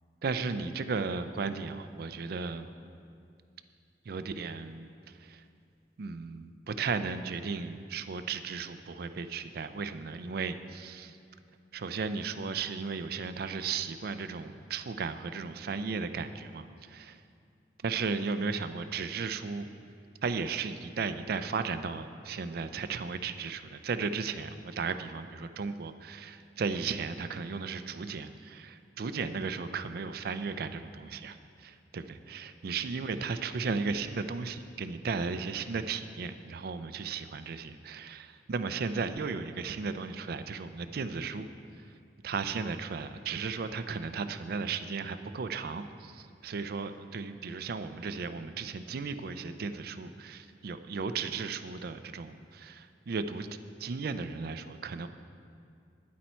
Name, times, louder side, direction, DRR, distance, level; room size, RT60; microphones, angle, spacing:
voice 1, 0.2-2.7 4.1-4.9 5.2-5.4 6.0-11.2 11.7-17.2 17.8-19.7 20.2-41.5 42.2-53.5 53.8-55.1, right 5 dB, 60° right, 10 dB, 0.4 m, -35 dB
9.4 x 8.5 x 4.4 m, 2.4 s
head